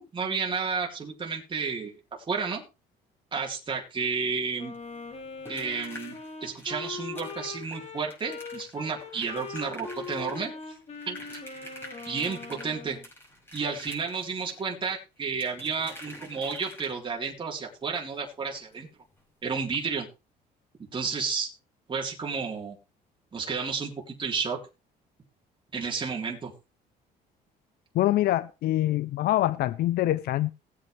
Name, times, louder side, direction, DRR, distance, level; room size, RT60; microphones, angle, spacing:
voice 1, 0.0-1.9 2.3-2.6 3.3-4.7 5.5-6.1 6.4-10.5 11.1-11.2 12.1-13.0 13.5-18.9 19.4-20.1 20.9-21.5 21.9-22.8 23.3-24.6 25.7-26.5, right 5 dB, 30° right, 3.8 m, -31 dB
Wind instrument woodwind instrument, 4.6-13.1, left 4 dB, 40° left, 3.7 m, -41 dB
sound 1, 4.7-17.2 18.7-18.8 19.1-19.2 19.6-19.7, equal, 15° left, 5.6 m, -48 dB
voice 2, 27.9-30.5, left 14 dB, 65° left, 0.5 m, -25 dB
19.0 x 8.6 x 3.3 m
cardioid pair, 110°, 17 cm